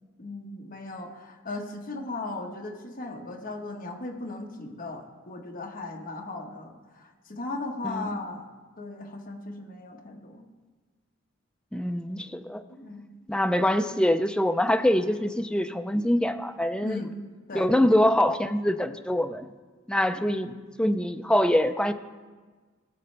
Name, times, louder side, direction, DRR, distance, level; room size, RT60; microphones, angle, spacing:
voice 1, 0.2-8.5 8.8-10.4 12.7-13.0 16.8-17.2 17.5-17.7 20.1-20.3, left 2 dB, 45° left, 2 dB, 1.3 m, -37 dB
voice 2, 7.8-8.2 11.7-12.6 13.3-17.0 17.5-19.5 19.9-21.9, left 1 dB, 5° left, 8 dB, 0.4 m, -24 dB
18.5 x 7.7 x 3.3 m, 1.4 s
head